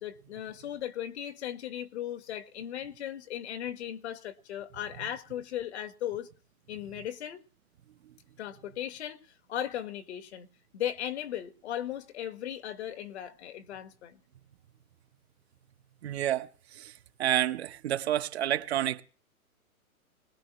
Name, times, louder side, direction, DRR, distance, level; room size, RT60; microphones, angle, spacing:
voice 1, 0.0-6.3 6.7-7.4 8.4-10.5 10.7-14.2, left 11 dB, 50° left, 1.6 m, -37 dB
voice 2, 16.0-16.5 16.8-16.9 17.2-19.0, right 12 dB, 45° right, 1.0 m, -29 dB
21.0 x 19.5 x 3.1 m
hypercardioid pair, 155°, 44 cm